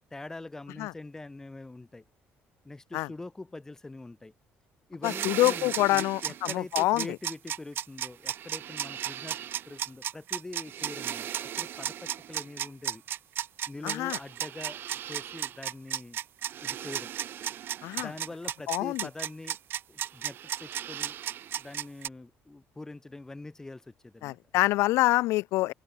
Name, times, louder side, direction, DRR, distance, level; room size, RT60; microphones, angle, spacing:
voice 1, 0.1-2.0 2.6-4.3 4.9-9.4 9.7-13.0 13.7-16.2 16.6-17.1 18.0-19.6 19.9-21.2 21.5-24.4, left 2 dB, 10° left, 3.1 m, -44 dB
voice 2, 5.0-7.1 13.8-14.2 17.8-18.1 18.7-19.1 24.2-25.7, left 19 dB, 80° left, 0.8 m, -26 dB
sound 1, 5.0-22.1, right 11 dB, 50° right, 1.4 m, -34 dB
open air
cardioid pair, 150°, 5 cm